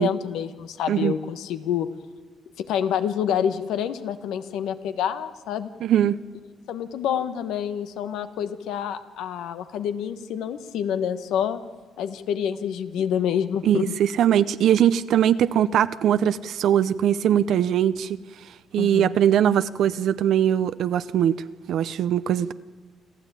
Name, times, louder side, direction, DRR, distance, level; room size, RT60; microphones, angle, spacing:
voice 1, 0.0-1.9 2.6-5.7 6.7-11.6 12.0-13.9 18.8-19.2, left 9 dB, 85° left, 10 dB, 1.3 m, -27 dB
voice 2, 5.8-6.2 13.6-18.2 18.7-22.5, right 10 dB, 75° right, 13 dB, 0.6 m, -21 dB
28.0 x 13.0 x 9.1 m, 1.4 s
cardioid pair, 90°, 0 cm